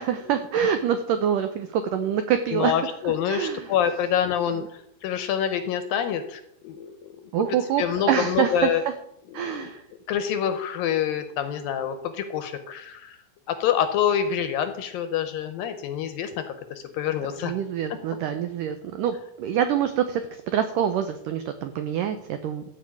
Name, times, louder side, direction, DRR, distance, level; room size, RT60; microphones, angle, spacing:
voice 1, 0.0-2.7 3.0-3.7 7.3-8.7 9.3-9.8 17.4-20.2 20.5-22.6, right 9 dB, 85° right, 8 dB, 1.8 m, -25 dB
voice 2, 2.5-4.6 5.0-7.3 7.8-8.8 9.3-9.7 10.1-13.1 13.5-17.5 17.9-18.0, left 9 dB, 75° left, 9 dB, 2.3 m, -26 dB
14.0 x 5.3 x 8.5 m, 0.79 s
omnidirectional pair, 4.8 m